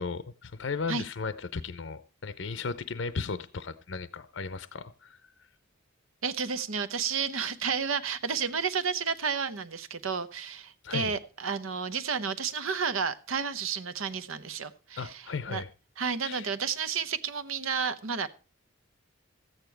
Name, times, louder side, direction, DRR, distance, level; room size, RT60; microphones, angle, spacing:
voice 1, 0.0-5.3 10.8-11.1 15.0-15.7 16.2-16.5, left 4 dB, 65° left, 0.6 m, -36 dB
voice 2, 6.2-15.6 16.0-18.3, right 6 dB, 85° right, 0.9 m, -31 dB
14.0 x 8.9 x 4.5 m
head